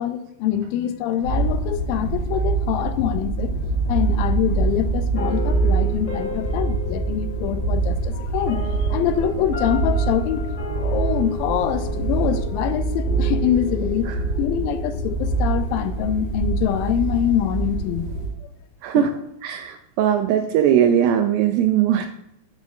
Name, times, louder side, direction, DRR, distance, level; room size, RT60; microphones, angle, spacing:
voice 1, 0.0-10.5 10.8-14.1 14.4-18.1 18.9-19.1, left 10 dB, 80° left, 10 dB, 2.2 m, -25 dB
sound 1, 1.2-18.3, right 3 dB, 50° left, 1.3 m, -25 dB
sound 2, 5.1-16.2, equal, 25° left, 2.7 m, -35 dB
voice 2, 19.4-22.1, right 10 dB, 85° right, 6 dB, 2.1 m, -19 dB
13.0 x 5.2 x 2.4 m, 0.81 s
omnidirectional pair, 4.5 m